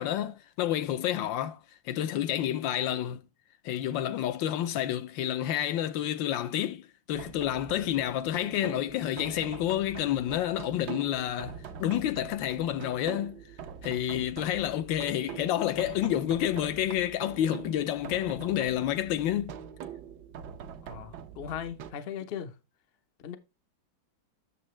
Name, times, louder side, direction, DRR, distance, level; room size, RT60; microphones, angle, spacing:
voice 1, 0.0-1.6 1.8-3.2 3.6-13.4 13.8-19.6, left 11 dB, 75° left, 1.3 m, -29 dB
sound 1, 7.1-21.9, right 8 dB, 65° right, 1.1 m, -44 dB
voice 2, 20.8-22.6 23.2-23.4, left 8 dB, 55° left, 0.6 m, -38 dB
7.6 x 6.8 x 3.1 m
omnidirectional pair, 2.1 m